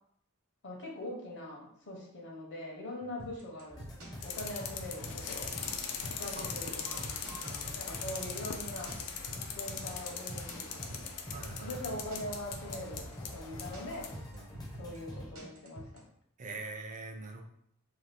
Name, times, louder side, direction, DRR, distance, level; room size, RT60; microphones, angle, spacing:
voice 1, 0.6-3.9 4.2-5.5 6.2-7.1 7.7-9.0 9.6-11.1 11.6-14.1 14.8-15.9, left 1 dB, 55° left, -1 dB, 0.8 m, -42 dB
sound 1, 3.2-16.0, right 1 dB, 65° right, 0.9 m, -46 dB
sound 2, 3.7-15.3, left 1 dB, 15° left, 0.5 m, -47 dB
sound 3, 4.2-14.2, left 6 dB, 80° left, 0.4 m, -41 dB
voice 2, 6.4-7.7 11.3-11.8 14.3-14.5 16.4-17.4, right 3 dB, 35° right, 3 dB, 0.4 m, -45 dB
2.7 x 2.3 x 3.3 m, 0.72 s
head